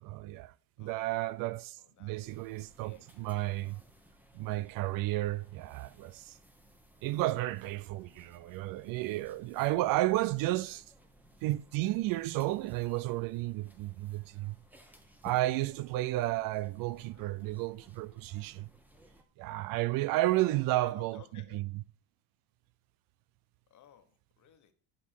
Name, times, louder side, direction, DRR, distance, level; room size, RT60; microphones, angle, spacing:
voice 1, 0.0-3.8 4.3-6.4 7.0-10.8 11.4-14.6 15.2-18.7 19.4-21.2 21.5-21.6, right 17 dB, 55° right, 0.5 m, -32 dB
voice 2, 0.8-1.3 1.8-2.2 2.8-4.1 7.0-7.6 7.9-8.6 10.6-10.8 17.0-17.6 20.3-21.6 23.7-24.7, left 10 dB, 45° left, 1.3 m, -59 dB
sound 1, 2.2-19.2, equal, 5° right, 1.2 m, -60 dB
10.0 x 3.8 x 6.3 m
supercardioid pair, 95°, 40 cm